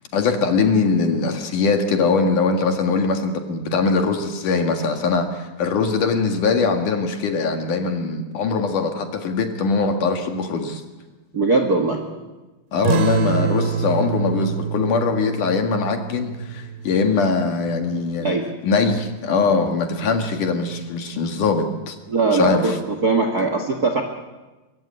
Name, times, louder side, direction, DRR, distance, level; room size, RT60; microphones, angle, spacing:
voice 1, 0.1-10.8 12.7-18.4 18.6-22.0 22.3-22.8, left 4 dB, 55° left, 5 dB, 3.1 m, -21 dB
voice 2, 11.3-12.0 18.2-18.4 22.1-22.7 23.0-24.0, right 3 dB, 50° right, 5 dB, 1.1 m, -20 dB
sound 1, 12.8-17.9, right 7 dB, 85° right, 4.0 m, -26 dB
23.5 x 23.0 x 8.7 m, 1.2 s
omnidirectional pair, 4.8 m